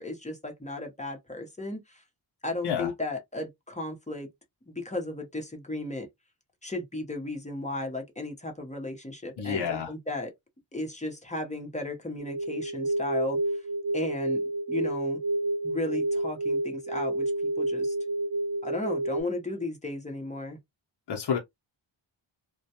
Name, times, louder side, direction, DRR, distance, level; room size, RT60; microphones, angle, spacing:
voice 1, 0.0-2.0 2.4-4.3 4.7-6.1 6.6-10.3 10.7-13.4 13.9-15.2 15.6-17.3 17.6-18.0 18.6-20.6, left 2 dB, 15° left, 0.8 m, -35 dB
voice 2, 9.4-9.9 21.1-21.4, left 7 dB, 65° left, 0.8 m, -29 dB
sound 1, 12.2-19.2, right 1 dB, 60° right, 0.8 m, -29 dB
2.2 x 2.2 x 2.7 m
wide cardioid pair, 95°, 45 cm